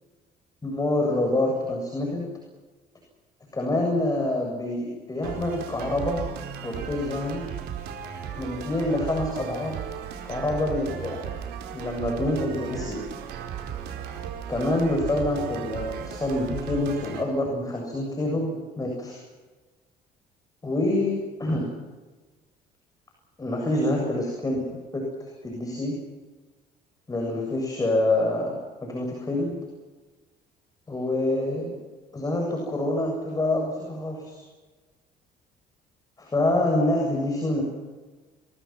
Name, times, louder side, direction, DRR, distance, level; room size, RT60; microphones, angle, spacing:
voice 1, 0.6-2.2 3.5-6.2 6.6-7.4 8.4-9.8 10.2-11.3 11.7-13.0 14.1-14.2 14.5-19.2 20.6-21.1 21.4-21.7 23.4-24.7 24.9-25.0 25.4-25.9 27.1-29.5 30.9-31.8 32.1-34.4 36.2-37.6, left 1 dB, 20° left, 0 dB, 7.6 m, -26 dB
sound 1, 5.2-17.2, right 8 dB, 80° right, 4.8 m, -36 dB
29.5 x 23.0 x 6.0 m, 1.3 s
cardioid pair, 110°, 17 cm